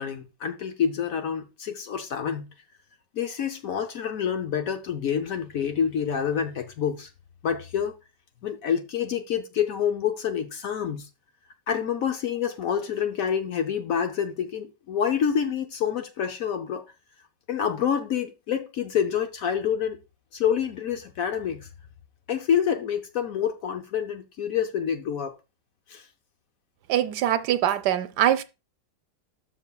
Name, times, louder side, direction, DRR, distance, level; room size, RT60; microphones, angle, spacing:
voice 1, 0.0-2.5 3.1-7.1 7.4-8.0 8.4-11.1 11.7-16.8 17.5-20.0 20.3-21.7 22.3-25.3 25.9-26.1, left 8 dB, 65° left, 1.0 m, -27 dB
voice 2, 26.9-28.4, right 11 dB, 75° right, 1.1 m, -23 dB
12.5 x 6.0 x 2.3 m
omnidirectional pair, 1.9 m